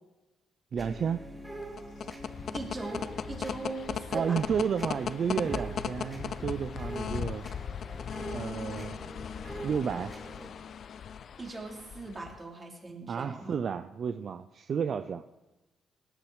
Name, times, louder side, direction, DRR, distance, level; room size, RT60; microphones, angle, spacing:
voice 1, 0.7-1.2 4.1-7.5 8.3-9.0 9.6-10.1 13.1-15.2, right 7 dB, 55° right, 10 dB, 0.6 m, -32 dB
sound 1, 0.8-10.5, right 1 dB, 10° right, 4.5 m, -43 dB
sound 2, 1.6-12.4, left 7 dB, 55° left, 0.6 m, -38 dB
voice 2, 2.5-3.0 3.3-4.4 11.4-13.6, right 2 dB, 25° right, 0 dB, 3.4 m, -39 dB
18.0 x 10.0 x 5.0 m, 1.0 s
cardioid pair, 90°, 0 cm